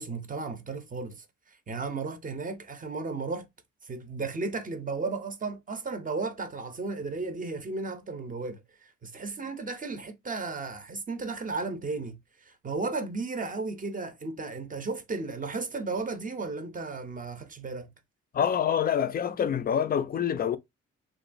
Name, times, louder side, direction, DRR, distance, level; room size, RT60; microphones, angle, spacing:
voice 1, 0.0-3.5 3.8-17.9, right 3 dB, 25° right, 0.6 m, -34 dB
voice 2, 18.3-20.6, left 8 dB, 30° left, 0.4 m, -26 dB
3.0 x 2.2 x 2.5 m
cardioid pair, 90°, 30 cm